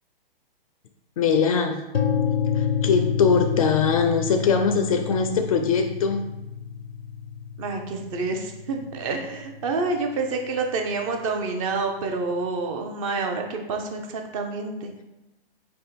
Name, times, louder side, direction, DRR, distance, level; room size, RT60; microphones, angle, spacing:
voice 1, 1.2-1.8 2.5-6.3, left 5 dB, 40° left, 6 dB, 0.4 m, -22 dB
sound 1, 1.9-9.8, left 7 dB, 90° left, 0.5 m, -29 dB
voice 2, 7.6-14.9, right 3 dB, 35° right, 3 dB, 0.6 m, -28 dB
3.6 x 2.6 x 4.1 m, 0.97 s
figure-of-eight pair, 120°, 29 cm